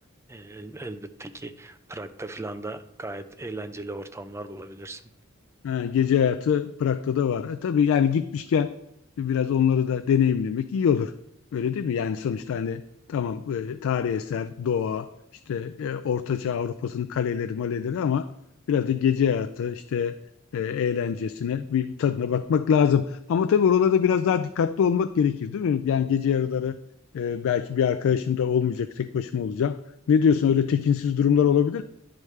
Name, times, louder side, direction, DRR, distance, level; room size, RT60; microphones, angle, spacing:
voice 1, 0.3-5.0, right 2 dB, 15° right, 9 dB, 0.4 m, -37 dB
voice 2, 5.6-8.7 9.2-11.1 11.5-12.8 13.1-15.1 15.5-18.3 18.7-20.2 20.5-26.8 27.1-29.8 30.1-31.8, left 7 dB, 65° left, 11 dB, 0.3 m, -24 dB
10.5 x 4.9 x 3.2 m, 0.82 s
head